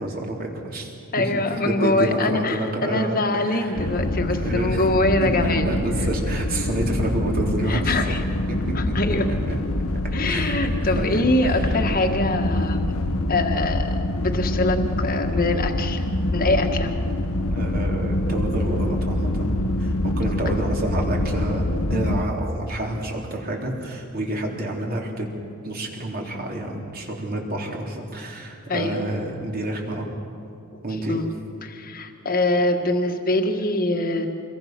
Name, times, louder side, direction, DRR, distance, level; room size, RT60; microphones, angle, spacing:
voice 1, 0.0-3.9 4.4-4.9 5.4-8.2 8.5-9.2 9.5-9.6 10.2-11.8 17.5-19.5 19.8-25.3 25.6-30.1 30.8-31.2, right 1 dB, 45° right, 0 dB, 3.7 m, -29 dB
voice 2, 1.1-5.7 7.7-8.2 8.7-9.3 10.1-12.9 13.3-16.0 16.3-16.9 28.7-29.0 30.7-30.8 31.1-31.2 31.6-34.3, left 2 dB, 40° left, 4 dB, 1.7 m, -24 dB
sound 1, 3.8-22.2, left 1 dB, 80° left, 1.2 m, -25 dB
27.0 x 22.0 x 6.1 m, 2.5 s
head